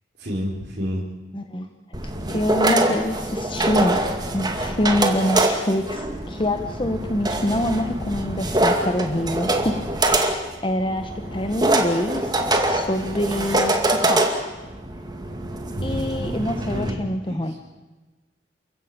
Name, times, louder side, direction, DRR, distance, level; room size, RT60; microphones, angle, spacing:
voice 1, 0.2-1.0 2.1-2.5 15.7-17.8, equal, 60° right, -6 dB, 4.3 m, -31 dB
voice 2, 1.3-1.7 2.3-4.0 4.3-14.5 15.8-17.6, left 1 dB, 30° left, 6 dB, 1.2 m, -26 dB
sound 1, 1.9-16.9, right 1 dB, 25° right, 2.2 m, -24 dB
29.0 x 15.0 x 8.8 m, 1.2 s
head